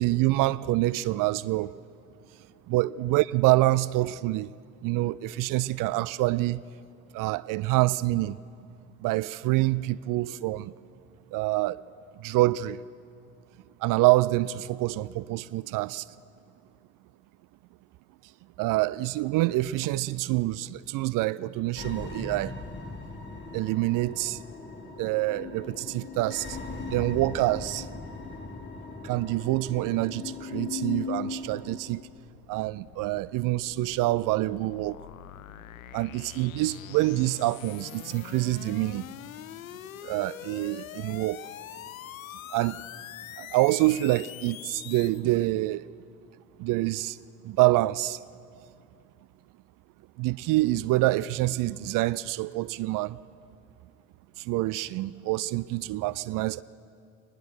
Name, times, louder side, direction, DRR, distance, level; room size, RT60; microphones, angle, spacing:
voice 1, 0.0-1.7 2.7-4.5 4.8-6.6 7.1-8.4 9.0-10.7 11.3-11.8 12.2-12.8 13.8-16.0 18.6-22.5 23.5-24.4 25.0-26.5 26.9-27.9 29.0-32.0 32.5-35.0 35.9-39.0 40.0-41.4 42.5-42.8 43.4-45.8 46.6-47.1 47.5-48.2 50.2-53.2 54.5-56.6, right 18 dB, 55° right, 0.5 m, -26 dB
sound 1, 21.8-31.8, left 4 dB, 25° left, 2.4 m, -38 dB
sound 2, 31.1-45.2, left 12 dB, 85° left, 0.5 m, -44 dB
22.0 x 20.0 x 6.3 m
figure-of-eight pair, 50°, 40 cm